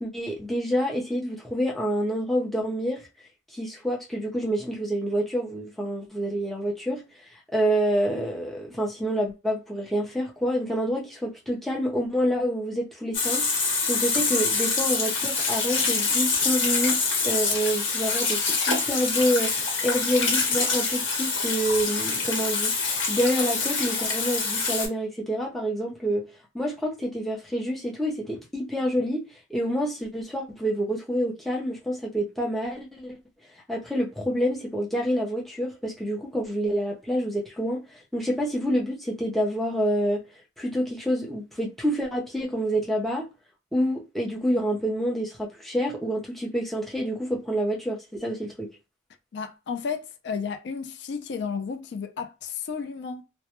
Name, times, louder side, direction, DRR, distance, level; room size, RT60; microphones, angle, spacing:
voice 1, 0.0-3.0 3.5-7.0 7.5-33.1 33.7-37.8 38.1-40.2 40.6-43.2 43.7-48.7, equal, ahead, 0.5 m, -27 dB
Water tap faucet / Sink (filling or washing), 13.1-24.9, left 4 dB, 85° left, 1.0 m, -25 dB
voice 2, 49.3-53.2, left 6 dB, 65° left, 0.3 m, -33 dB
2.1 x 2.0 x 2.9 m
head